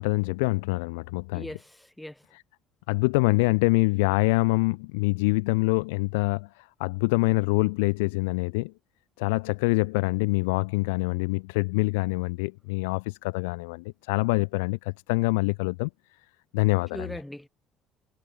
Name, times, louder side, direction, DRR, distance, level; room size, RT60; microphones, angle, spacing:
voice 1, 0.0-1.5 2.3-2.4 2.9-8.7 9.2-15.9 16.5-17.2, left 26 dB, 85° left, 1.4 m, -25 dB
voice 2, 1.3-2.2 16.9-17.5, left 1 dB, 5° left, 4.6 m, -39 dB
supercardioid pair, 70°, 0 cm